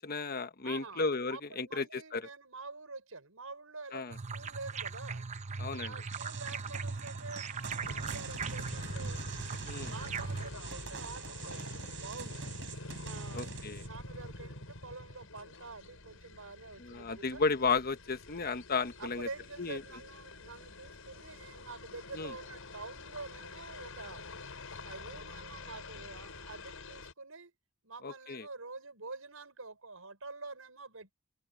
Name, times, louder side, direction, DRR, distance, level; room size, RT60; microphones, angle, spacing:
voice 1, 0.0-2.2 3.9-4.2 5.6-5.9 9.6-9.9 13.3-13.8 16.8-19.3 19.6-19.8 22.1-22.3 28.0-28.5, left 4 dB, 45° left, 1.1 m, -34 dB
voice 2, 0.6-5.3 5.8-9.2 9.9-12.5 13.0-17.4 19.0-24.2 24.8-27.5 27.8-31.1, right 3 dB, 90° right, 5.4 m, -47 dB
sound 1, 4.1-10.5, right 4 dB, 35° right, 0.7 m, -39 dB
sound 2, 6.1-13.9, right 6 dB, 60° right, 5.6 m, -46 dB
sound 3, 7.8-27.1, left 2 dB, 80° left, 6.2 m, -46 dB
head